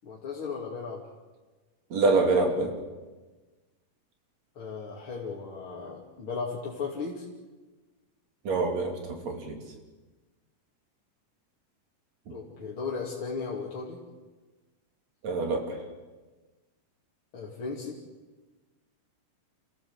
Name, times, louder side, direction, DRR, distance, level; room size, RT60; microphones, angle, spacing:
voice 1, 0.0-1.0 4.6-7.2 12.3-14.0 17.3-18.0, left 5 dB, 40° left, -3 dB, 3.0 m, -36 dB
voice 2, 1.9-2.8 8.5-9.6 15.2-15.8, right 3 dB, 55° right, 4 dB, 3.9 m, -26 dB
29.0 x 16.0 x 8.1 m, 1.3 s
omnidirectional pair, 3.8 m